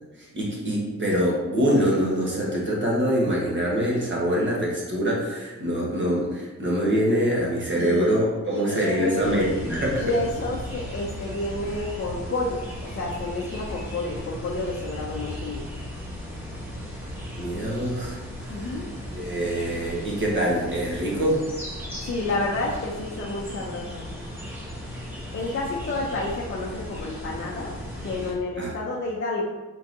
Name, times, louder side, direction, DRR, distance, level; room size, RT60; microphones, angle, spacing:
voice 1, 0.2-10.0 17.4-18.2 18.5-18.8 19.1-21.4 28.6-28.7, equal, 40° right, -4 dB, 1.2 m, -24 dB
voice 2, 7.7-8.2 8.4-9.4 10.0-15.6 18.5-18.9 22.0-24.1 25.3-27.7 28.0-29.5, left 2 dB, 45° left, -3 dB, 0.5 m, -30 dB
sound 1, 9.2-28.3, equal, 5° right, 0.9 m, -36 dB
4.5 x 3.8 x 2.6 m, 1.2 s
wide cardioid pair, 150°, 29 cm